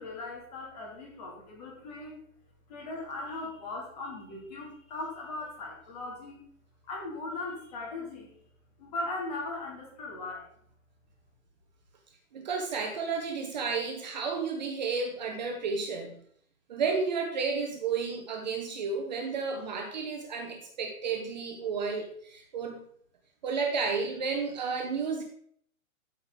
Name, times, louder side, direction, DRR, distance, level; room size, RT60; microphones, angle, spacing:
voice 1, 0.0-2.2 2.7-6.4 6.8-8.3 8.8-10.5, left 2 dB, 30° left, -1 dB, 2.9 m, -38 dB
voice 2, 12.3-16.2 16.7-22.8 23.4-25.2, right 5 dB, 30° right, 2 dB, 1.1 m, -32 dB
13.0 x 5.4 x 3.9 m, 0.63 s
hypercardioid pair, 170°, 42 cm